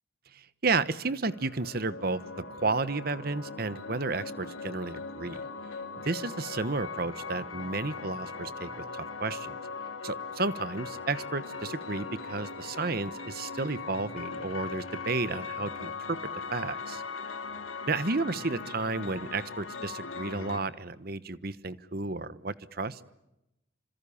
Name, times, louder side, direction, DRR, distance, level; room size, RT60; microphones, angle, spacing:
voice 1, 0.3-2.2 2.5-5.5 6.0-9.6 10.0-16.2 16.5-17.0 17.9-23.0, right 3 dB, 50° right, 15 dB, 1.1 m, -32 dB
sound 1, 1.3-20.6, left 4 dB, 85° left, 3.1 m, -40 dB
27.5 x 26.0 x 7.2 m, 0.90 s
head